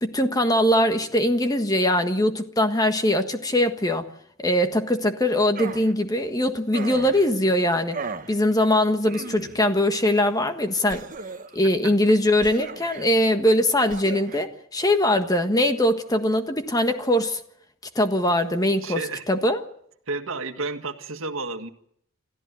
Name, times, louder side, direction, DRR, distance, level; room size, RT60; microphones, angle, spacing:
voice 1, 0.0-4.1 4.4-8.0 8.3-11.0 11.5-17.4 17.9-19.0 19.3-19.6, left 1 dB, 15° left, 7 dB, 1.4 m, -21 dB
sound 1, 5.5-5.9 6.7-7.3 7.9-8.3 9.1-9.7 10.9-11.6 12.4-13.1 13.9-14.4, right 4 dB, 40° right, 1.2 m, -36 dB
voice 2, 18.8-19.2 20.1-21.7, right 3 dB, 70° right, 7 dB, 1.8 m, -31 dB
28.5 x 14.5 x 9.2 m, 0.70 s
head